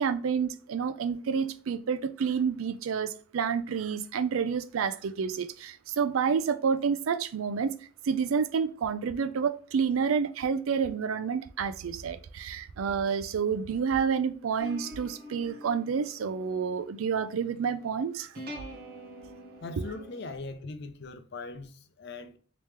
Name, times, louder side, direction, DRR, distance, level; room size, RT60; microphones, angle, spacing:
voice 1, 0.0-7.7 8.0-18.3 19.8-19.9, right 6 dB, 90° right, 0.4 m, -29 dB
sound 1, 14.6-20.4, equal, 45° right, 1.0 m, -46 dB
voice 2, 19.6-22.4, left 3 dB, 55° left, 0.5 m, -40 dB
3.2 x 3.0 x 3.3 m
head